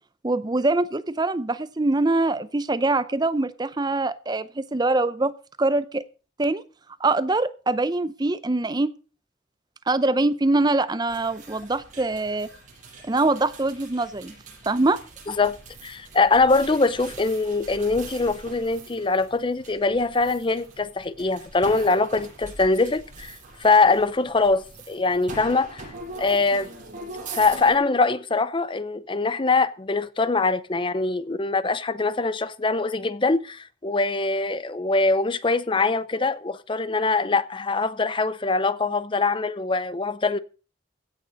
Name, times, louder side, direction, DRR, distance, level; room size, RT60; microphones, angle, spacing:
voice 1, 0.2-5.3 5.6-6.0 6.4-6.6 7.0-8.9 9.9-12.5 13.0-14.3 14.7-15.0, right 2 dB, 20° right, 0.6 m, -23 dB
sound 1, 11.1-27.8, right 3 dB, 40° right, 6.9 m, -42 dB
voice 2, 15.3-15.6 15.8-25.9 26.2-26.7 27.3-40.4, left 3 dB, 25° left, 0.5 m, -23 dB
16.5 x 6.6 x 6.3 m
head